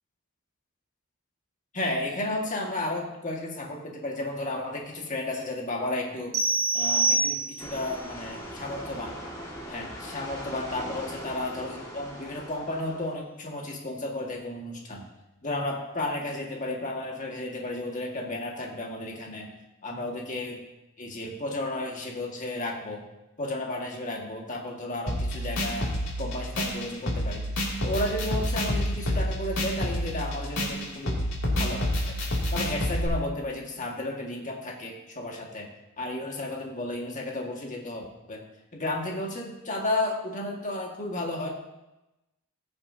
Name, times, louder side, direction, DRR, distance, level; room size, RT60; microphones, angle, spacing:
voice 1, 1.7-6.3 6.7-9.1 9.7-15.1 15.4-19.5 19.8-20.6 21.0-23.0 23.4-27.5 27.8-31.2 31.5-32.2 32.5-35.7 36.0-38.4 38.7-41.5, left 2 dB, 35° left, -1 dB, 1.8 m, -33 dB
sound 1, 6.3-7.9, right 3 dB, 85° right, 2.3 m, -25 dB
sound 2, 7.6-13.1, equal, 15° left, 1.8 m, -40 dB
sound 3, 25.1-33.1, equal, 75° left, 2.6 m, -29 dB
19.0 x 7.0 x 2.8 m, 0.98 s
head